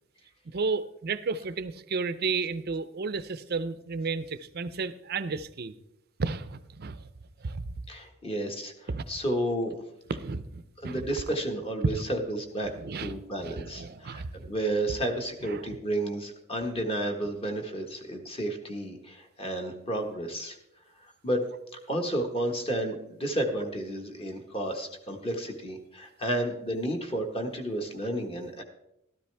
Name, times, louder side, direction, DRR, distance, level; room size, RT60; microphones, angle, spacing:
voice 1, 0.5-5.7 6.2-7.1 7.4-7.6 8.9-9.0 10.1-11.0 11.9-12.0 12.6-13.1 13.4-14.5 15.4-15.6, right 4 dB, 50° right, 13 dB, 0.6 m, -33 dB
voice 2, 7.9-9.7 10.8-12.7 13.0-20.6 21.0-21.4 21.9-28.6, right 1 dB, 30° left, 3 dB, 1.5 m, -32 dB
13.0 x 13.0 x 3.4 m, 0.83 s
head